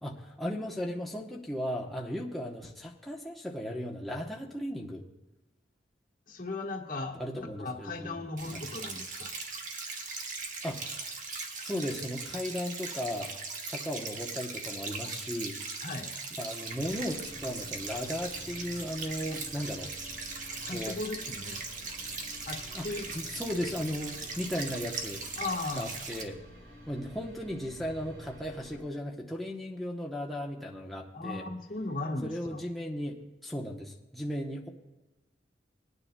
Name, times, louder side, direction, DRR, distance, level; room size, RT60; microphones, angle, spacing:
voice 1, 0.0-5.0 7.1-8.2 8.5-8.6 10.6-11.1 11.6-13.3 13.6-15.6 16.4-19.9 20.7-21.0 22.7-22.9 23.1-25.2 25.8-26.4 26.9-31.4 32.2-34.7, equal, ahead, -3 dB, 0.9 m, -36 dB
voice 2, 6.3-9.3 15.8-16.1 20.6-21.6 22.4-23.0 25.4-25.9 31.1-32.6, left 2 dB, 55° left, 2 dB, 1.3 m, -37 dB
sound 1, 8.4-26.2, right 4 dB, 50° right, 1.2 m, -39 dB
sound 2, 16.7-28.8, equal, 70° right, 4.5 m, -50 dB
20.5 x 9.7 x 2.2 m, 1.1 s
head